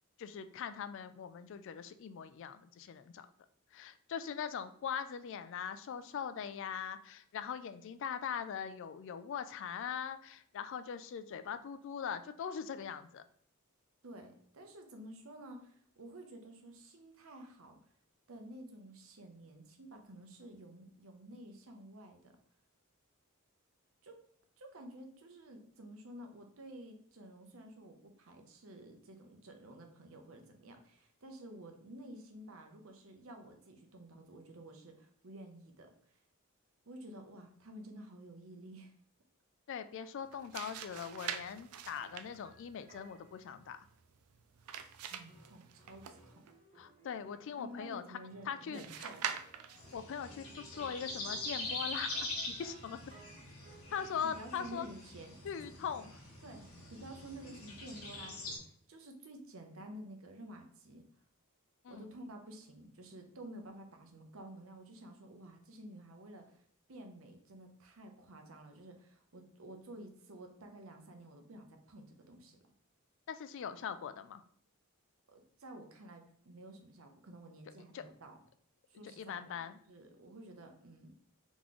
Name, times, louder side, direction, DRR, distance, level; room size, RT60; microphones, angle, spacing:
voice 1, 0.2-3.3 3.7-13.2 39.7-43.9 46.8-48.2 48.5-49.1 49.9-53.0 53.9-54.9 55.4-56.1 61.8-62.1 73.3-74.4 77.9-78.0 79.2-79.8, left 7 dB, 60° left, 11 dB, 0.3 m, -41 dB
voice 2, 14.0-17.8 18.3-22.4 24.0-24.2 24.6-36.2 36.9-38.9 45.0-46.4 47.6-49.4 54.3-55.7 56.4-61.0 61.9-66.6 66.9-72.6 75.3-78.4 78.9-79.6 79.9-81.1, right 1 dB, 70° right, 4 dB, 0.8 m, -51 dB
sound 1, 40.2-46.5 48.7-50.0, right 8 dB, 85° right, 0.4 m, -45 dB
sound 2, 41.9-43.4 45.3-54.9 56.7-58.6, right 2 dB, 30° right, 1.1 m, -61 dB
sound 3, 49.8-58.6, left 2 dB, 75° left, 1.2 m, -43 dB
3.8 x 3.0 x 3.7 m, 0.62 s
head